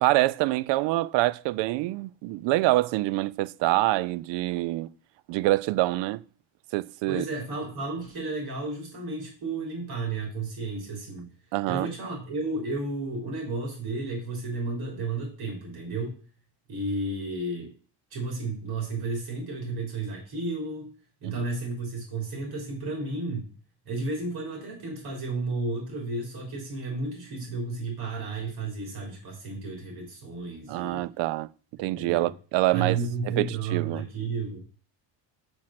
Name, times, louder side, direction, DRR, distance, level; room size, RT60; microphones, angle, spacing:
voice 1, 0.0-4.9 5.3-6.2 6.7-7.2 11.5-11.9 21.2-21.4 30.7-31.5 31.8-33.0 33.4-34.1, right 18 dB, 70° right, 0.5 m, -25 dB
voice 2, 7.1-11.3 11.7-16.2 16.7-17.7 18.1-20.9 21.2-23.5 23.9-31.1 31.8-32.3 32.7-34.6, right 3 dB, 55° right, 3.9 m, -32 dB
6.3 x 6.2 x 5.8 m
cardioid pair, 150°, 45 cm